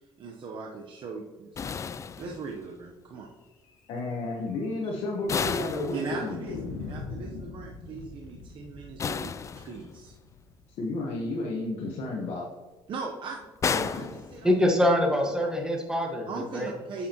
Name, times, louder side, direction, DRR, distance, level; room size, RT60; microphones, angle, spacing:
voice 1, 0.2-1.9 2.2-3.3 5.9-10.1 12.9-14.5 15.1-15.3 16.3-17.1, right 4 dB, 50° right, 0 dB, 0.9 m, -39 dB
sound 1, 1.5-2.8 5.3-6.6 9.0-10.2 13.6-14.9, left 6 dB, 30° left, 0.3 m, -33 dB
sound 2, 3.6-3.8 4.1-4.2 4.5-4.6 5.2-5.8 6.5-11.3, left 4 dB, 90° left, 1.5 m, -42 dB
voice 2, 3.9-6.4 10.8-12.5 13.6-14.1, left 2 dB, 70° left, -2 dB, 1.2 m, -32 dB
voice 3, 14.4-16.7, left 1 dB, 5° right, 1 dB, 1.5 m, -24 dB
8.4 x 7.1 x 3.0 m, 1.2 s
cardioid pair, 100°, 11 cm